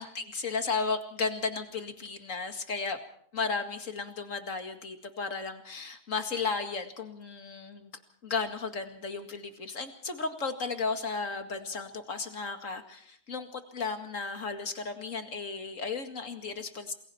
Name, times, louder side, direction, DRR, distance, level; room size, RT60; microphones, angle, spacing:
voice 1, 0.0-3.0 3.3-7.9 8.2-16.9, left 4 dB, 55° left, 6 dB, 2.4 m, -34 dB
28.0 x 21.5 x 4.4 m, 0.62 s
omnidirectional pair, 1.6 m